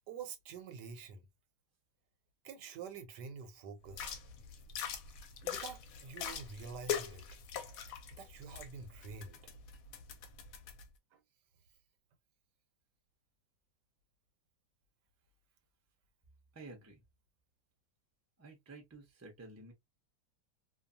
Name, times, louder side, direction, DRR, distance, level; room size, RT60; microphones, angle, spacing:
voice 1, 0.1-1.3 2.4-4.1 5.4-7.2 8.1-9.4 11.1-11.2, right 5 dB, 90° right, 1.3 m, -47 dB
sound 1, 3.9-10.8, left 8 dB, 70° left, 0.9 m, -43 dB
voice 2, 16.5-17.0 18.4-19.7, right 2 dB, 20° right, 0.4 m, -52 dB
2.6 x 2.4 x 2.5 m
omnidirectional pair, 1.8 m